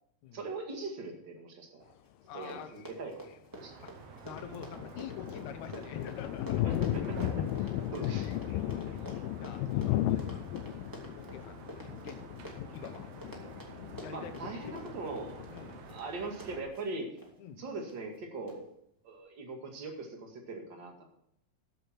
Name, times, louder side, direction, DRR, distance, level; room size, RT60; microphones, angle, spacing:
voice 1, 0.3-1.9 2.3-3.2 3.6-3.7 6.6-7.2 7.9-8.6 14.1-17.1 17.6-18.7 19.0-21.0, right 3 dB, 35° right, 2 dB, 2.1 m, -41 dB
Run, 2.0-2.1 2.3-17.3 17.9-18.2 18.5-18.6, right 1 dB, 10° right, 1.4 m, -49 dB
voice 2, 2.3-2.7 3.8-3.9 4.2-7.3 9.4-10.4 11.2-12.3 12.7-13.1 14.0-14.9 15.5-15.8 17.4-17.6, left 8 dB, 65° left, 8 dB, 2.0 m, -46 dB
sound 1, 3.5-16.6, right 6 dB, 70° right, 3.0 m, -50 dB
sound 2, 4.3-16.0, left 13 dB, 80° left, 2.2 m, -35 dB
13.5 x 8.3 x 4.5 m, 0.75 s
omnidirectional pair, 4.5 m